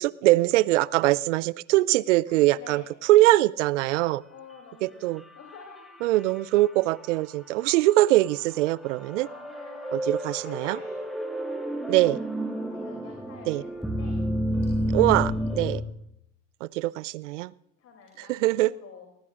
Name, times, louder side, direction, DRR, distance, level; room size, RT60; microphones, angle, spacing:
voice 1, 0.0-2.8 3.1-4.2 4.8-5.2 6.0-9.3 9.9-10.8 11.9-12.2 13.5-13.6 14.9-15.8 16.6-17.5 18.3-18.7, right 17 dB, 80° right, 23 dB, 0.5 m, -22 dB
voice 2, 2.3-2.9 4.0-6.0 8.9-11.0 12.7-14.2 17.8-19.1, left 6 dB, 45° left, 2 dB, 3.0 m, -49 dB
sound 1, 5.2-6.6 7.1-7.2 8.3-15.8, equal, ahead, 2.1 m, -30 dB
19.5 x 19.0 x 2.5 m, 0.79 s
hypercardioid pair, 80°, 36 cm